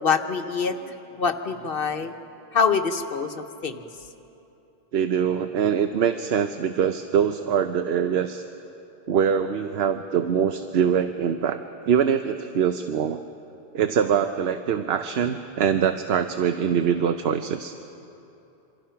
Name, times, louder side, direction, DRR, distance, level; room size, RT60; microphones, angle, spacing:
voice 1, 0.0-2.1 2.5-3.8, left 5 dB, 60° left, 7 dB, 1.3 m, -25 dB
voice 2, 4.9-8.4 9.1-11.6 11.9-13.2 13.7-17.8, right 8 dB, 75° right, 8 dB, 1.0 m, -23 dB
26.5 x 25.5 x 5.7 m, 2.9 s
omnidirectional pair, 1.1 m